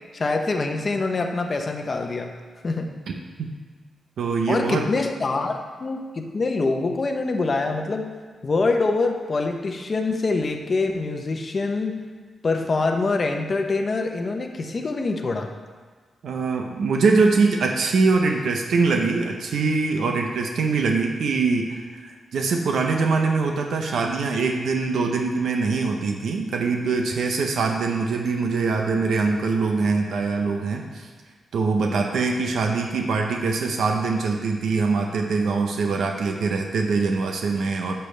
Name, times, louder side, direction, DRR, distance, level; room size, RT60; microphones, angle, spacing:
voice 1, 0.1-2.3 2.6-2.9 4.5-8.1 8.4-12.0 12.4-15.5, left 3 dB, 35° left, 3 dB, 0.8 m, -25 dB
voice 2, 4.2-4.9 16.2-31.1 31.5-37.9, right 4 dB, 80° right, 2 dB, 0.8 m, -23 dB
12.0 x 6.9 x 3.3 m, 1.5 s
wide cardioid pair, 125°, 0 cm